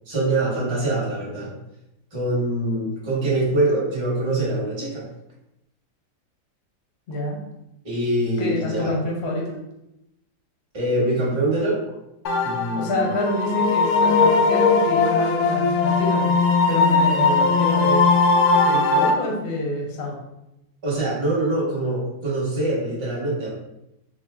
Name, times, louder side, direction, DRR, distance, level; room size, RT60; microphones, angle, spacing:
voice 1, 0.1-1.5 2.1-5.0 7.8-9.0 10.7-11.8 12.4-13.1 20.8-23.5, right 1 dB, 20° right, -6 dB, 1.0 m, -24 dB
voice 2, 8.4-9.5 12.7-16.3 16.7-18.1 18.6-20.2, left 1 dB, 50° left, -1 dB, 0.8 m, -27 dB
sound 1, 12.3-19.1, left 4 dB, 80° left, 1.2 m, -19 dB
3.5 x 2.2 x 3.6 m, 0.87 s
omnidirectional pair, 1.8 m